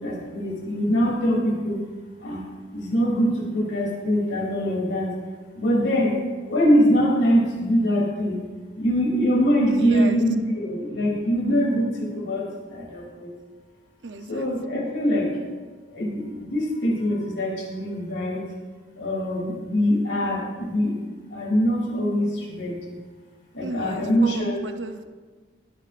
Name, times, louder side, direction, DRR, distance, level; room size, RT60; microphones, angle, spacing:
voice 1, 0.0-1.8 2.2-2.4 2.7-5.1 5.5-6.1 6.5-8.4 8.8-11.9 12.1-12.4 12.7-13.3 14.3-15.3 15.9-18.4 19.0-20.9 21.3-22.8 23.5-24.6, equal, 75° left, -1 dB, 3.0 m, -23 dB
voice 2, 9.7-10.2 14.0-14.5 23.6-25.0, right 3 dB, 75° right, 8 dB, 0.7 m, -33 dB
21.5 x 9.1 x 2.6 m, 1.4 s
head